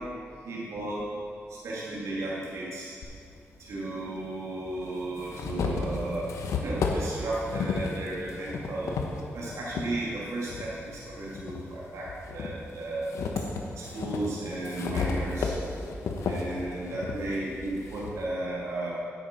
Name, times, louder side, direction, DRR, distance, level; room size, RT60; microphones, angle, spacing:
voice 1, 0.4-1.1 1.5-2.9 3.6-9.0 9.3-13.1 13.7-15.5 16.2-19.0, right 2 dB, 75° right, -6 dB, 2.2 m, -34 dB
sound 1, 3.0-3.1 4.2-4.3 4.8-9.9 10.4-11.6 12.1-18.2, left 4 dB, 80° left, 1.0 m, -33 dB
8.7 x 8.5 x 5.1 m, 2.5 s
cardioid pair, 80°, 5 cm